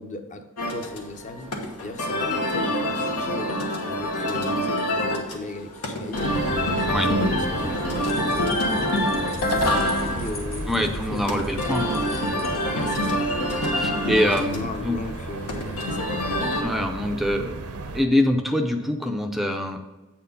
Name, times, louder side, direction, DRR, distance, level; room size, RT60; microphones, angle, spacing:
voice 1, 0.0-1.5 1.8-3.5 3.9-6.7 7.0-9.0 9.4-11.4 12.7-13.3 14.4-16.1, left 2 dB, 35° left, 6 dB, 0.8 m, -36 dB
sound 1, 0.6-16.6, left 1 dB, 85° left, 1.4 m, -26 dB
sound 2, 6.1-18.0, right 2 dB, 80° right, 0.8 m, -35 dB
sound 3, 7.3-13.3, left 2 dB, 60° left, 1.9 m, -42 dB
voice 2, 10.7-12.0 13.7-15.0 16.5-17.5 17.9-19.8, left 1 dB, ahead, 3 dB, 0.5 m, -24 dB
8.4 x 4.4 x 5.4 m, 1.1 s
head